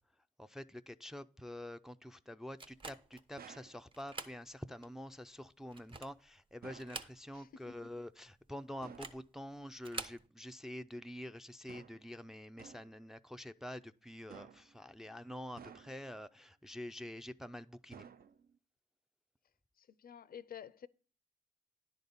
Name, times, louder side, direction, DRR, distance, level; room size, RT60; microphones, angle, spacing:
voice 1, 0.4-18.1, left 1 dB, ahead, 0.4 m, -47 dB
sound 1, 2.6-3.3 3.9-4.4 4.8-4.9 5.6-6.3 6.7-7.5 7.8-7.9 8.8-9.3 9.8-10.2, right 3 dB, 30° right, 0.7 m, -46 dB
sound 2, 3.4-3.8 6.6-7.0 8.8-9.2 11.7-12.1 12.6-13.0 14.3-14.8 15.6-16.2 17.9-18.6, right 7 dB, 60° right, 0.5 m, -54 dB
voice 2, 7.3-7.9 19.8-20.9, left 8 dB, 60° left, 0.4 m, -51 dB
10.5 x 4.0 x 6.8 m
cardioid pair, 80°, 18 cm